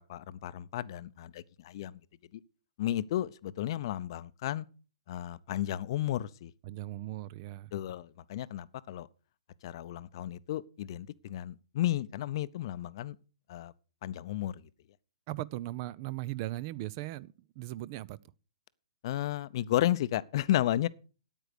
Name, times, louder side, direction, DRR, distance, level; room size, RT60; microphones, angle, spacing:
voice 1, 0.0-2.0 2.3-2.4 2.8-4.7 5.1-6.5 7.7-9.1 9.6-13.2 13.5-13.7 14.0-14.6 19.0-20.9, left 13 dB, 45° left, 0.7 m, -33 dB
voice 2, 6.6-7.7 15.3-18.2, right 16 dB, 35° right, 0.5 m, -38 dB
9.1 x 9.1 x 6.5 m
figure-of-eight pair, 125°, 3 cm